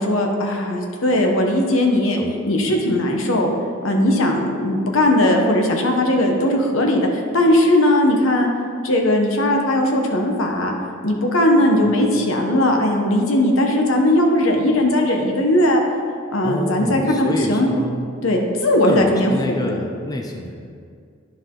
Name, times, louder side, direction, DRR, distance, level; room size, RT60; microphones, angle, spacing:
voice 1, 0.0-2.2 2.5-3.5 3.8-7.0 7.3-8.5 8.8-10.7 11.0-15.8 16.3-17.7 18.2-19.6, left 1 dB, 85° left, 2 dB, 1.0 m, -18 dB
voice 2, 2.6-3.0 11.8-11.9 16.4-18.1 18.8-20.7, left 1 dB, 20° left, 2 dB, 0.5 m, -27 dB
10.5 x 4.8 x 3.8 m, 2.2 s
head